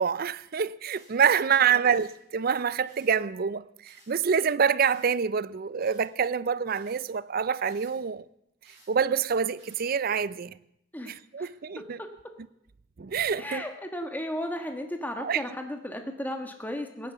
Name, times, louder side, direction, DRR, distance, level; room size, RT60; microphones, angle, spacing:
voice 1, 0.0-8.2 8.9-10.5 11.1-12.0 13.0-13.6 15.2-15.4, right 7 dB, 50° right, 0.5 m, -26 dB
sound 1, 0.9-1.1 1.9-2.1 2.8-3.1 3.8-4.1 4.8-5.1 5.8-6.1 6.7-7.0 7.6-7.9 8.6-8.9 9.6-9.9, right 2 dB, 30° right, 7.8 m, -58 dB
voice 2, 11.8-12.1 13.4-17.1, left 1 dB, 10° left, 1.4 m, -35 dB
16.5 x 9.6 x 6.9 m
head